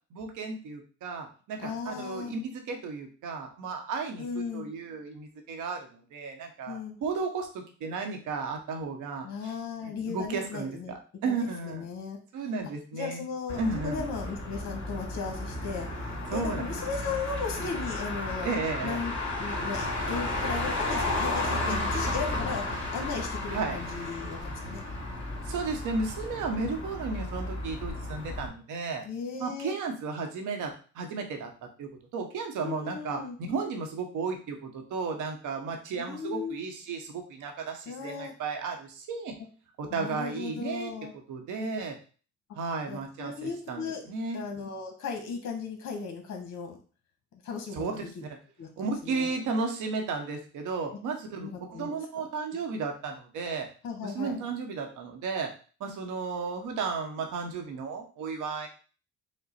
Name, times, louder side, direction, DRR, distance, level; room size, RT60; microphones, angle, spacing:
voice 1, 0.1-9.5 9.8-11.9 12.3-13.2 13.6-14.0 16.3-16.8 18.4-19.0 21.6-21.9 23.5-23.8 25.4-29.0 29.4-31.5 31.8-39.3 39.8-40.9 41.3-42.0 42.5-44.4 47.7-48.3 48.8-53.7 54.0-55.5 55.8-58.7, right 4 dB, 85° right, 4 dB, 1.0 m, -34 dB
voice 2, 1.6-2.3 4.2-4.7 6.6-7.0 9.2-11.0 11.3-12.2 12.9-15.9 16.3-18.5 18.8-22.6 22.9-24.8 29.0-29.7 32.6-33.4 36.0-36.6 37.9-38.3 39.9-41.1 41.5-41.7 42.9-44.0 44.3-46.8 47.4-48.3 48.6-49.4 51.4-52.0 53.8-54.4, left 5 dB, 60° left, 3 dB, 1.0 m, -36 dB
Motor vehicle (road), 13.5-28.5, left 2 dB, 40° left, 2.1 m, -33 dB
5.2 x 2.2 x 4.2 m, 0.39 s
cardioid pair, 90°, 30 cm